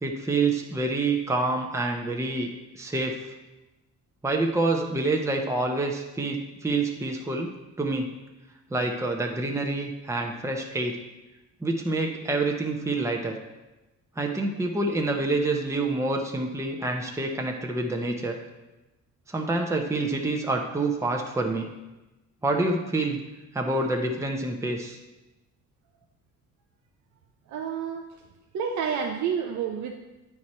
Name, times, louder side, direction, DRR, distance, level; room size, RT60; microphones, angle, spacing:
voice 1, 0.0-2.5 2.7-3.2 4.2-7.5 7.8-8.1 8.7-11.0 11.6-13.3 14.2-18.4 19.3-21.7 22.4-23.2 23.5-25.0, right 2 dB, 10° right, 2 dB, 0.8 m, -27 dB
voice 2, 27.5-28.0 28.5-29.9, right 7 dB, 70° right, 2 dB, 0.7 m, -29 dB
9.5 x 4.7 x 4.3 m, 1.0 s
cardioid pair, 90°, 30 cm